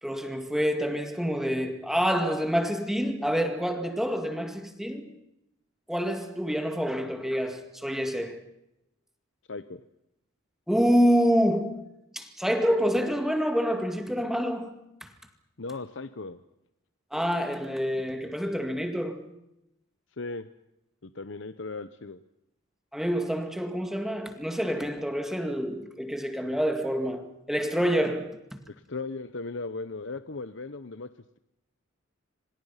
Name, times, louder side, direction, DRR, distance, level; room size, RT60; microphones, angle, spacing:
voice 1, 0.0-5.1 5.9-8.4 10.7-11.8 12.1-14.8 17.1-19.3 22.9-28.4, equal, ahead, 2.2 m, -27 dB
voice 2, 9.5-9.8 15.6-16.4 20.2-20.5 21.0-22.2 28.7-31.1, left 3 dB, 65° left, 0.9 m, -37 dB
27.0 x 25.5 x 5.8 m
head